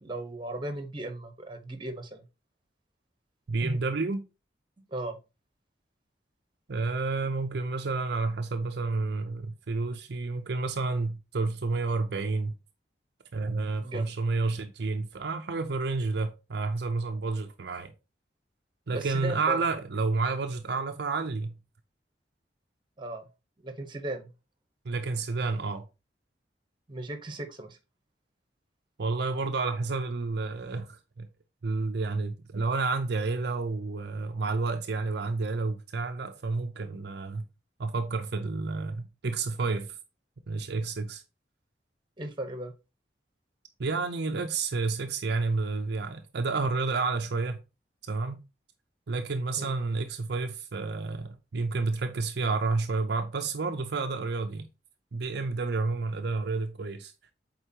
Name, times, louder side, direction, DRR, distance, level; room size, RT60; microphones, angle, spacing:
voice 1, 0.0-2.2 3.6-3.8 4.9-5.2 13.8-14.1 18.9-19.6 23.0-23.2 23.6-24.3 26.9-27.8 42.2-42.7 49.6-49.7, right 1 dB, 25° right, 1.2 m, -36 dB
voice 2, 3.5-4.2 6.7-12.5 13.3-17.9 18.9-21.6 24.8-25.9 29.0-31.3 31.6-37.4 37.8-40.0 40.5-41.2 43.8-47.6 48.1-48.4 49.1-54.7 55.1-57.1, right 3 dB, 65° right, 0.6 m, -30 dB
8.0 x 4.1 x 2.9 m
head